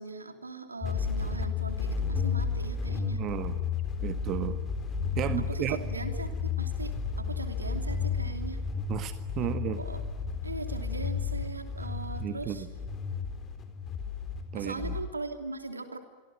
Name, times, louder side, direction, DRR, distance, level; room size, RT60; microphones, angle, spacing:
voice 1, 0.0-3.2 5.5-8.6 9.6-10.0 10.4-12.6 14.5-16.0, right 3 dB, 80° right, 7 dB, 3.0 m, -40 dB
sound 1, 0.8-15.0, left 5 dB, 25° left, 4.1 m, -32 dB
voice 2, 3.1-3.6 4.0-4.6 5.2-5.8 8.9-9.8 12.2-12.7 14.5-15.0, right 11 dB, 35° right, 10 dB, 1.7 m, -33 dB
27.0 x 23.5 x 9.1 m, 1.4 s
figure-of-eight pair, 90°, 0 cm